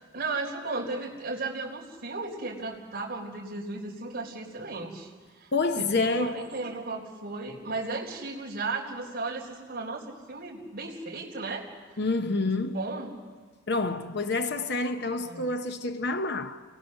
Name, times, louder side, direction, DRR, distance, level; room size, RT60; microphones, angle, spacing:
voice 1, 0.1-11.7 12.6-13.2 15.2-15.4, right 3 dB, 45° right, 3.9 m, -35 dB
voice 2, 5.5-6.5 12.0-12.8 13.7-16.6, left 3 dB, 55° left, 0.8 m, -28 dB
28.5 x 20.5 x 6.5 m
head